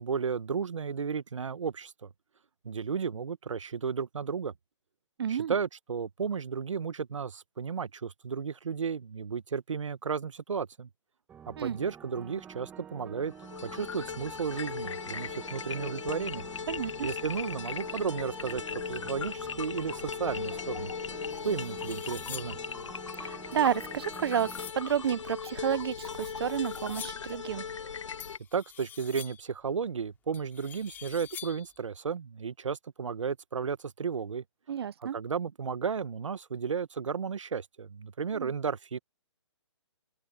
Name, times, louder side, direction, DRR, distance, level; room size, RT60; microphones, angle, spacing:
voice 1, 0.0-2.1 2.6-4.5 5.3-10.9 11.5-13.3 13.6-16.4 17.0-20.9 21.4-22.6 28.5-34.4 35.0-39.0, right 6 dB, 85° right, 1.3 m, -33 dB
voice 2, 5.2-5.5 11.6-11.8 16.7-17.1 23.2-27.6 34.7-35.2 38.3-38.5, right 8 dB, 55° right, 0.8 m, -31 dB
sound 1, 11.3-24.7, right 8 dB, 10° right, 1.5 m, -49 dB
sound 2, 13.3-28.4, left 6 dB, 75° left, 1.4 m, -38 dB
sound 3, 20.8-20.9 21.3-22.7 23.5-24.9 25.9-27.4 28.2-29.6 30.3-31.8, left 10 dB, 10° left, 3.9 m, -47 dB
open air
hypercardioid pair, 160°, 16 cm